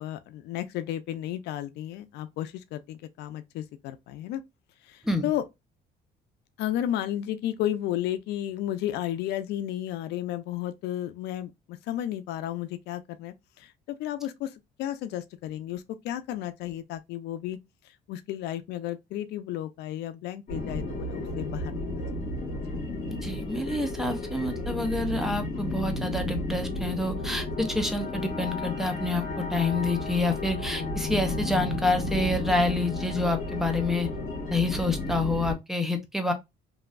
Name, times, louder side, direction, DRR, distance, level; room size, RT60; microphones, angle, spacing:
voice 1, 0.0-4.4 4.8-5.4 6.6-17.6 17.8-22.0, left 12 dB, 80° left, 0.4 m, -33 dB
sound 1, 20.5-35.5, left 2 dB, 50° left, 1.5 m, -32 dB
voice 2, 23.2-34.1 34.5-36.3, left 2 dB, ahead, 0.6 m, -28 dB
3.0 x 2.6 x 2.4 m
cardioid pair, 110°, 17 cm